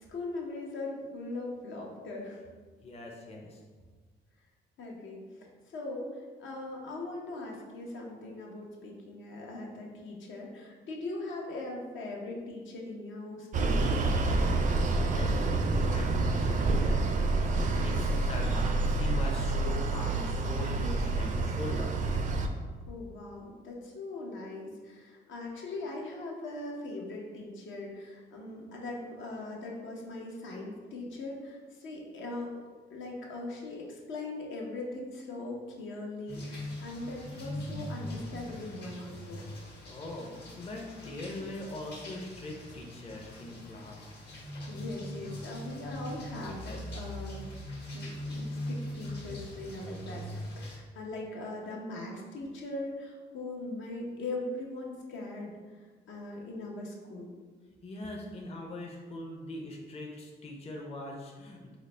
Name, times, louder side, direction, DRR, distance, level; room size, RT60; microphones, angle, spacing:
voice 1, 0.0-2.4 4.8-13.8 22.9-32.5 32.9-39.4 43.7-43.9 44.7-47.4 47.9-57.3, left 2 dB, 75° left, -2 dB, 0.8 m, -40 dB
voice 2, 2.8-3.6 14.3-22.1 39.9-44.2 57.8-61.8, left 1 dB, 30° left, -1 dB, 0.6 m, -42 dB
sound 1, 13.5-22.5, right 2 dB, 40° right, 0.4 m, -28 dB
sound 2, 36.3-50.8, left 1 dB, 55° left, 1.1 m, -41 dB
3.9 x 2.0 x 3.2 m, 1.4 s
cardioid pair, 90°, 20 cm